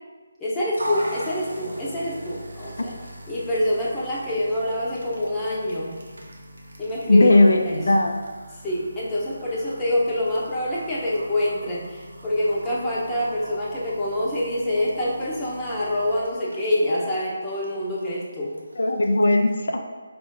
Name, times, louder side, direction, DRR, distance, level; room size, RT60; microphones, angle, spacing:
voice 1, 0.4-2.9 3.3-6.0 6.8-7.4 7.7-7.9 8.6-18.5, left 1 dB, 15° left, -7 dB, 0.8 m, -26 dB
sound 1, 0.7-19.5, right 1 dB, 85° right, 0.8 m, -41 dB
voice 2, 7.1-8.2 18.8-19.8, left 2 dB, 70° left, 4 dB, 0.4 m, -18 dB
4.9 x 2.5 x 3.7 m, 1.4 s
figure-of-eight pair, 155°, 0 cm